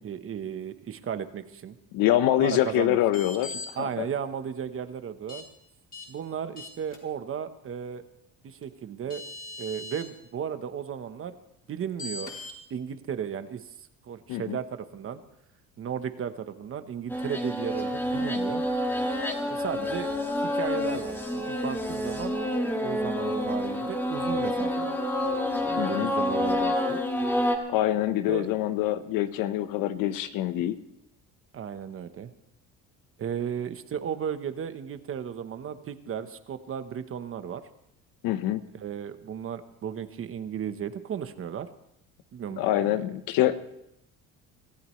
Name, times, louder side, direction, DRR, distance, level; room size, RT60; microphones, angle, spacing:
voice 1, 0.0-1.8 2.4-3.0 3.8-5.5 6.1-8.0 8.4-9.2 9.6-11.3 11.7-12.3 12.7-13.6 14.0-15.2 15.8-18.6 19.4-20.1 20.4-22.4 22.8-25.0 25.7-27.0 28.3-28.5 31.5-32.3 33.2-37.6 38.8-41.7 42.3-43.0, right 8 dB, 40° right, 10 dB, 1.1 m, -35 dB
voice 2, 1.9-4.1 14.3-14.6 25.8-26.1 27.7-30.7 38.2-38.6 42.6-43.6, left 13 dB, 85° left, 11 dB, 1.1 m, -25 dB
sound 1, 3.1-3.7 5.3-5.4 5.9-6.1 6.6-7.0 8.6-8.7 9.1-10.0 12.0-12.5, left 3 dB, 25° left, 4.0 m, -39 dB
sound 2, 17.1-27.6, left 1 dB, 5° left, 1.7 m, -28 dB
24.0 x 14.5 x 3.2 m, 0.81 s
cardioid pair, 130°, 34 cm